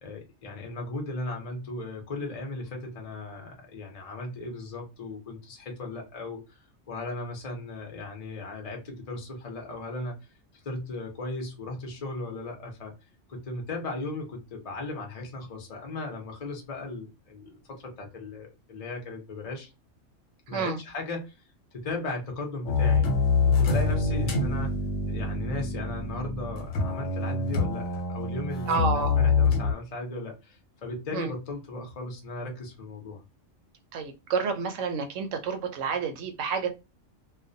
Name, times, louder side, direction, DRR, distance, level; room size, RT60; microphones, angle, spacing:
voice 1, 0.0-6.6 6.9-10.2 10.6-12.9 13.3-19.7 20.5-21.4 21.7-23.1 23.5-33.2, left 2 dB, 40° left, 0.6 m, -37 dB
sound 1, 22.6-29.7, left 4 dB, 75° left, 1.0 m, -25 dB
voice 2, 28.7-29.2 31.1-31.3 33.9-36.7, right 5 dB, 80° right, 0.9 m, -29 dB
2.3 x 2.1 x 2.6 m
omnidirectional pair, 1.3 m